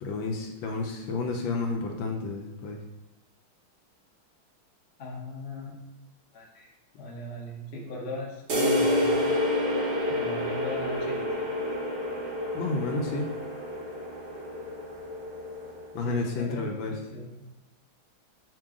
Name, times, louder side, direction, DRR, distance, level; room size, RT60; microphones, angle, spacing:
voice 1, 0.0-2.8 12.5-13.3 15.9-17.0, left 3 dB, 75° left, 2 dB, 1.3 m, -31 dB
voice 2, 5.0-5.8 6.3-6.7 7.0-9.3 10.1-11.5 16.0-17.4, left 1 dB, 55° left, -2 dB, 0.7 m, -38 dB
sound 1, 8.5-16.0, left 1 dB, 70° right, 0.6 m, -29 dB
5.0 x 2.9 x 3.6 m, 1.1 s
omnidirectional pair, 2.3 m